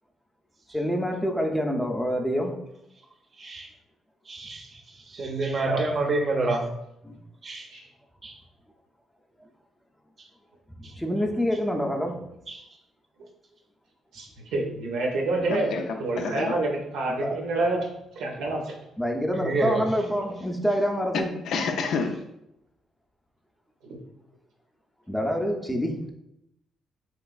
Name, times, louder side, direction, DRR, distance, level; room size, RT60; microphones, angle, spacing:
voice 1, 0.7-2.6 7.0-7.2 10.9-12.2 17.1-17.4 19.0-21.3 25.1-26.1, equal, 5° left, 2 dB, 0.5 m, -27 dB
voice 2, 3.4-3.7 4.3-4.8 5.1-6.7 7.4-7.7 8.2-8.4 12.5-12.6 19.3-19.9, right 2 dB, 40° right, 3 dB, 0.5 m, -28 dB
voice 3, 14.1-15.7 16.0-17.9 18.2-18.8 23.8-24.0, right 2 dB, 85° right, 0 dB, 0.6 m, -28 dB
voice 4, 15.3-16.6 21.1-22.2, left 4 dB, 75° left, 5 dB, 0.4 m, -29 dB
3.3 x 2.9 x 2.3 m, 0.83 s
cardioid pair, 90°, 0 cm